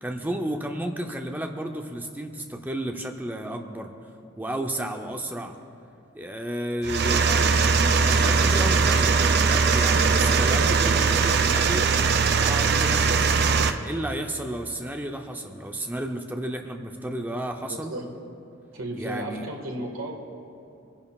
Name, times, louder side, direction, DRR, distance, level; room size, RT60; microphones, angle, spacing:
voice 1, 0.0-3.9 4.4-5.6 6.1-11.9 12.4-17.9 18.9-19.4, right 1 dB, 10° right, 4 dB, 0.6 m, -32 dB
sound 1, 6.8-13.7, right 5 dB, 50° right, 0.4 m, -20 dB
voice 2, 9.8-10.8 17.8-18.1 18.7-20.2, right 1 dB, 85° right, 1 dB, 1.7 m, -34 dB
23.5 x 10.5 x 2.4 m, 2.8 s
head